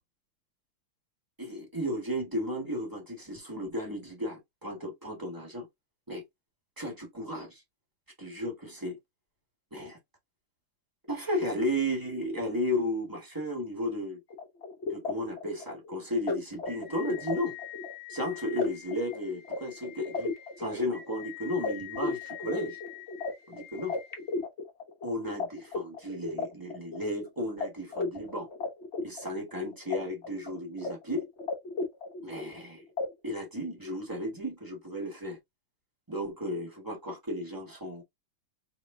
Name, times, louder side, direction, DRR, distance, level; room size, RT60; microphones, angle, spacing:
voice 1, 1.4-5.7 6.1-6.2 6.8-7.6 8.2-9.0 9.7-10.0 11.1-14.2 14.9-17.5 18.1-20.3 20.6-22.8 23.5-24.0 25.0-28.5 29.0-31.3 32.2-32.8 33.2-35.4 36.1-38.0, left 1 dB, 10° right, 1.5 m, -34 dB
sound 1, 14.3-25.4 25.7-27.3 27.6-27.7 27.9-30.0 30.2-30.9 31.2-32.6 33.0-33.1, left 4 dB, 40° left, 1.1 m, -35 dB
5.1 x 3.2 x 2.8 m
omnidirectional pair, 2.4 m